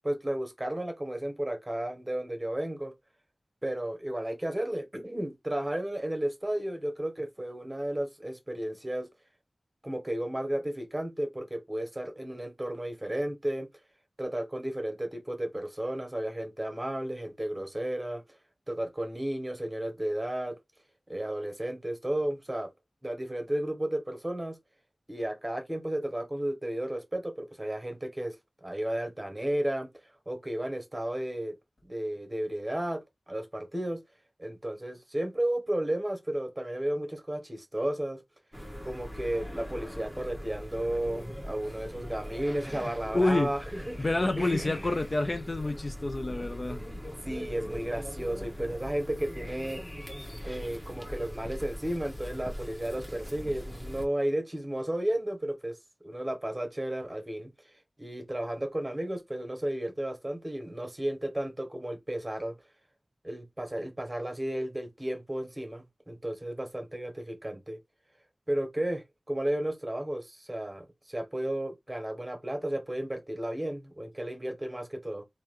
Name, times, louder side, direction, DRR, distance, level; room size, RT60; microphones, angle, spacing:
voice 1, 0.0-2.9 3.6-9.1 9.8-13.7 14.2-18.2 18.7-20.6 21.1-22.7 23.0-24.6 25.1-28.4 28.6-29.9 30.3-31.6 31.9-34.0 34.4-38.2 38.8-44.1 44.3-44.9 47.2-49.8 50.4-55.8 56.0-57.5 58.0-62.5 63.2-67.8 68.5-75.2, right 1 dB, 20° right, 1.1 m, -33 dB
sound 1, 38.5-54.0, equal, 10° left, 1.3 m, -41 dB
voice 2, 42.6-43.5 44.0-46.8, left 2 dB, 40° left, 0.4 m, -28 dB
3.7 x 2.7 x 3.1 m
wide cardioid pair, 65°, 0 cm